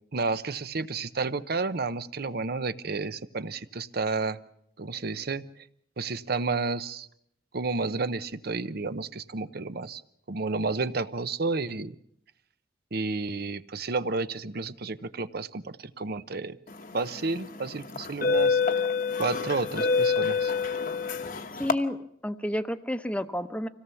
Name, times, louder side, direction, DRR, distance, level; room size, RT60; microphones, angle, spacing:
voice 1, 0.1-4.4 4.8-5.6 6.0-7.1 7.5-10.0 10.3-12.0 12.9-16.6 16.9-18.6 19.2-20.5, right 3 dB, 55° right, 14 dB, 0.8 m, -31 dB
sound 1, 16.9-17.2 17.9-21.7, left 5 dB, 50° left, 1.1 m, -26 dB
voice 2, 21.6-22.0 22.2-23.7, left 1 dB, 5° left, 10 dB, 0.8 m, -30 dB
25.5 x 17.5 x 7.0 m, 0.73 s
head